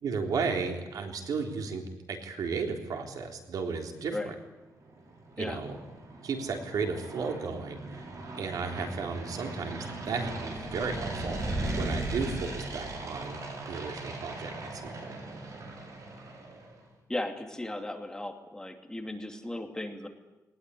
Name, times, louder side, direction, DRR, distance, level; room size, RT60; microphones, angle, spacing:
voice 1, 0.0-1.8 2.1-4.3 5.4-5.8 6.2-7.8 8.3-11.4 11.7-13.4 13.7-14.9, right 5 dB, 85° right, 3 dB, 3.6 m, -34 dB
sound 1, 4.5-16.8, right 2 dB, 60° right, 6.6 m, -41 dB
sound 2, 10.3-13.6, right 1 dB, 35° right, 6.1 m, -35 dB
voice 2, 17.1-20.1, left 1 dB, 10° left, 4 dB, 2.7 m, -36 dB
20.5 x 19.5 x 9.9 m, 1.1 s
cardioid pair, 110°, 6 cm